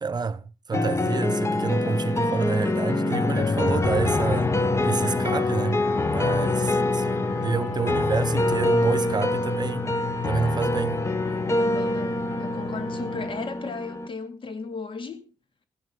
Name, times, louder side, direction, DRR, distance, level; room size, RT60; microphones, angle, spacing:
voice 1, 0.0-11.0, right 5 dB, 40° right, 0.9 m, -29 dB
sound 1, 0.7-14.1, left 2 dB, 25° left, 1.3 m, -25 dB
sound 2, 1.4-13.3, left 6 dB, 85° left, 1.8 m, -36 dB
voice 2, 6.3-7.0 11.6-15.3, left 4 dB, 50° left, 2.3 m, -36 dB
16.0 x 10.5 x 3.8 m
hypercardioid pair, 45°, 11 cm